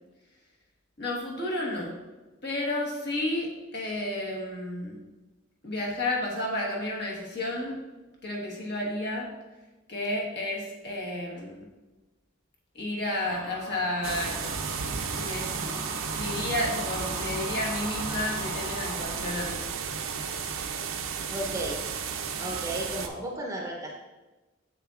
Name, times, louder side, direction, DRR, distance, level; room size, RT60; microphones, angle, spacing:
voice 1, 1.0-2.0 2.4-5.0 5.6-7.8 8.2-9.3 9.9-11.6 12.7-14.5 15.1-15.9 16.1-19.7, left 1 dB, 50° left, -2 dB, 1.3 m, -31 dB
sound 1, 13.2-19.5, left 1 dB, 80° left, 2.0 m, -41 dB
sound 2, 14.0-23.1, right 6 dB, 75° right, 0.5 m, -33 dB
voice 2, 21.3-21.8 22.4-23.9, right 1 dB, 15° right, 0 dB, 0.7 m, -34 dB
7.2 x 6.6 x 2.4 m, 1.1 s
head